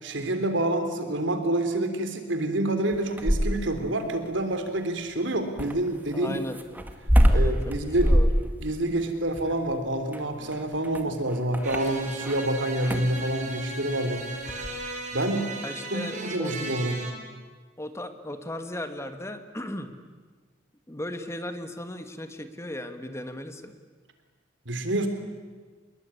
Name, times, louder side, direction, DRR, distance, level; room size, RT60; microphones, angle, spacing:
voice 1, 0.0-6.4 7.3-8.1 8.6-14.3 15.1-15.5 15.9-17.0 24.7-25.1, right 1 dB, 70° right, 7 dB, 3.5 m, -27 dB
sound 1, 2.9-3.8 5.6-12.4 12.8-13.2 14.5-14.8, equal, 10° right, 1.9 m, -24 dB
voice 2, 6.1-6.6 7.2-8.3 11.1-11.2 15.6-16.6 17.8-19.9 20.9-23.8, left 1 dB, 15° left, 8 dB, 1.5 m, -36 dB
sound 2, 11.6-17.1, right 2 dB, 40° right, 5.5 m, -37 dB
26.5 x 21.5 x 9.8 m, 1.4 s
head